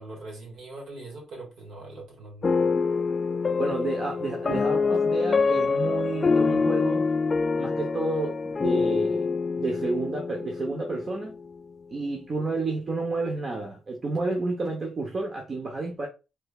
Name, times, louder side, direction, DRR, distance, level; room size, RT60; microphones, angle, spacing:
voice 1, 0.0-2.7, right 2 dB, 70° right, 1.8 m, -42 dB
sound 1, 2.4-11.6, left 4 dB, 30° left, 0.3 m, -25 dB
voice 2, 3.6-7.0 7.6-9.3 9.6-11.4 11.9-16.1, right 3 dB, 40° right, 0.8 m, -30 dB
3.3 x 3.1 x 2.3 m
cardioid pair, 90°, 0 cm